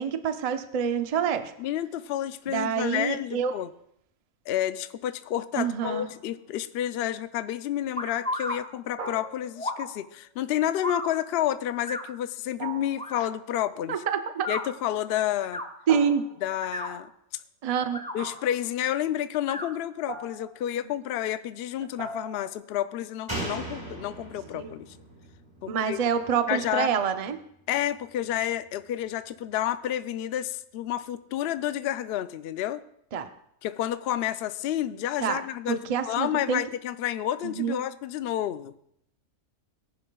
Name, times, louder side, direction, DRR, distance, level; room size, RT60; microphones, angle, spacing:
voice 1, 0.0-1.5 2.5-3.5 5.6-6.1 13.9-14.5 15.9-16.3 17.6-18.0 24.5-24.7 25.7-27.4 33.1-33.3 35.2-35.4 35.7-36.6 37.4-37.8, right 7 dB, 45° right, 8 dB, 0.5 m, -27 dB
voice 2, 1.6-3.7 4.5-14.0 14.5-15.6 16.4-17.1 18.1-25.0 25.6-26.0 26.5-26.9 27.7-32.8 33.6-38.7, left 11 dB, 65° left, 12 dB, 0.6 m, -30 dB
sound 1, 5.8-6.5 9.0-9.9 12.6-13.2 15.9-16.6 18.2-18.7 20.1-20.7 22.0-22.6, right 4 dB, 80° right, 2.1 m, -40 dB
sound 2, 8.0-8.6 9.6-9.9 10.8-11.1 11.8-12.1 12.9-13.2 14.3-14.6 15.4-15.7 16.5-16.9 17.8-18.2 19.4-19.7, left 1 dB, 5° left, 0.8 m, -33 dB
Slam, 23.3-26.8 27.1-27.2, right 1 dB, 20° right, 4.7 m, -38 dB
18.5 x 10.5 x 2.3 m, 0.72 s
omnidirectional pair, 1.5 m